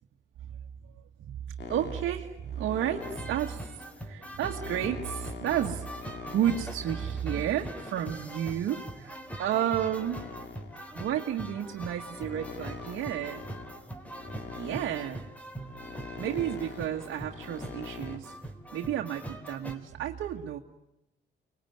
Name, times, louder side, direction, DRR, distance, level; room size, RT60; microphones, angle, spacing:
voice 1, 0.5-5.8 6.1-9.1 9.4-10.2 10.9-13.4 14.5-15.3 16.2-18.4 18.7-20.6, right 10 dB, 75° right, 2 dB, 1.6 m, -32 dB
sound 1, 1.6-9.0 9.6-18.2, left 6 dB, 60° left, 2.5 m, -44 dB
sound 2, 3.0-19.8, right 1 dB, 5° left, 3.4 m, -42 dB
25.0 x 20.5 x 9.3 m, 0.90 s
cardioid pair, 90°, 20 cm